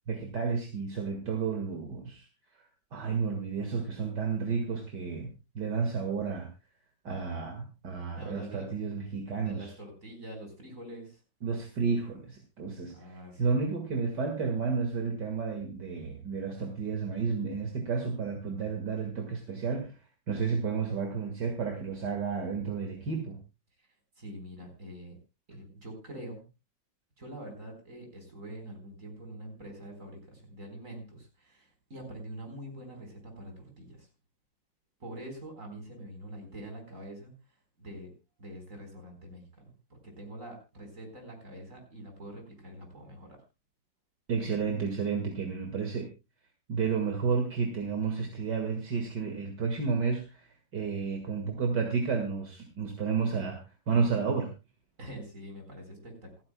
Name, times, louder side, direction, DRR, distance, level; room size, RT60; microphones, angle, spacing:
voice 1, 0.1-2.3 2.9-6.5 7.0-9.7 11.4-20.0 20.3-23.4 44.3-46.1 46.7-53.6 53.9-54.5, right 5 dB, 65° right, 4 dB, 2.5 m, -31 dB
voice 2, 8.2-8.7 9.3-11.2 12.9-13.6 24.2-25.2 25.5-26.5 27.2-34.1 35.0-37.3 37.8-38.1 38.4-39.7 40.0-43.4 55.0-56.4, right 1 dB, 45° right, 4 dB, 4.7 m, -45 dB
27.5 x 9.8 x 2.2 m, 0.28 s
omnidirectional pair, 2.0 m